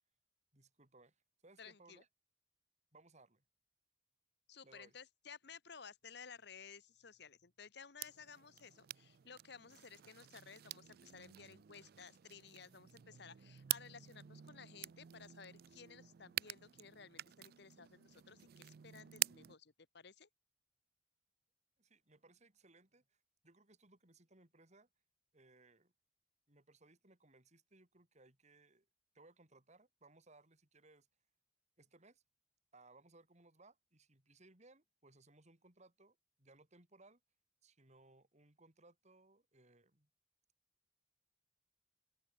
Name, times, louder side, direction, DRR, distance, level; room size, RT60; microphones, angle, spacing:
voice 1, 0.5-2.1 2.9-3.4 4.6-5.0 21.8-24.9 25.3-25.9 26.5-28.9 29.1-31.1 31.8-32.2 32.7-37.2 37.6-40.1, right 2 dB, 40° right, 4.2 m, -65 dB
voice 2, 1.6-2.0 4.5-20.3, left 6 dB, 65° left, 1.3 m, -56 dB
sound 1, 8.0-19.6, right 15 dB, 55° right, 0.4 m, -47 dB
open air
head